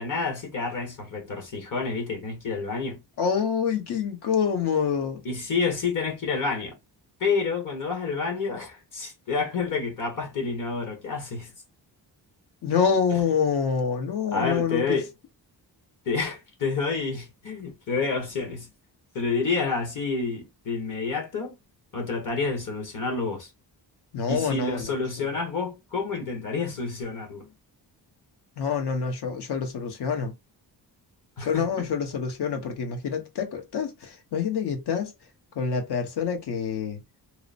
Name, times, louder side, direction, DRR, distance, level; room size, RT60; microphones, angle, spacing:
voice 1, 0.0-3.0 5.2-6.7 7.2-11.5 14.3-15.1 16.0-18.7 19.1-21.6 21.9-23.5 24.3-27.5 31.4-31.7, left 4 dB, 50° left, 1.2 m, -29 dB
voice 2, 3.2-5.2 12.6-15.0 24.1-24.9 25.2-25.3 28.6-30.3 31.4-35.1 35.5-37.0, left 6 dB, 70° left, 1.0 m, -26 dB
2.9 x 2.0 x 2.4 m
wide cardioid pair, 130°, 42 cm